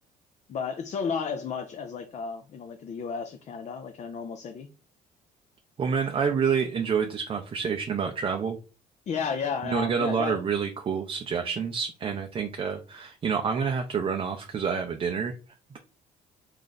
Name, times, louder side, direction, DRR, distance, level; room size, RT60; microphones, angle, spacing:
voice 1, 0.5-4.7 9.1-10.4, left 6 dB, 40° left, 0.5 m, -33 dB
voice 2, 5.8-8.6 9.7-15.3, right 6 dB, 30° right, 0.5 m, -28 dB
3.2 x 2.5 x 3.9 m
cardioid pair, 110°, 17 cm